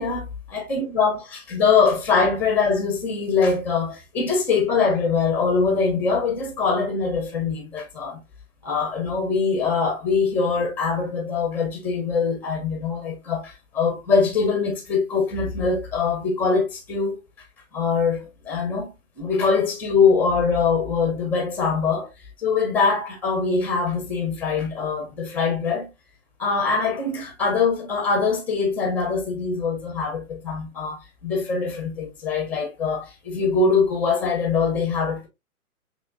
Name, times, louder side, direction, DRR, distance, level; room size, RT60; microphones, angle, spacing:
voice 1, 0.0-8.2 8.6-17.2 17.7-22.1 22.4-25.9 26.4-35.3, left 5 dB, 5° left, 0.7 m, -23 dB
5.9 x 3.4 x 2.5 m
figure-of-eight pair, 125°, 44 cm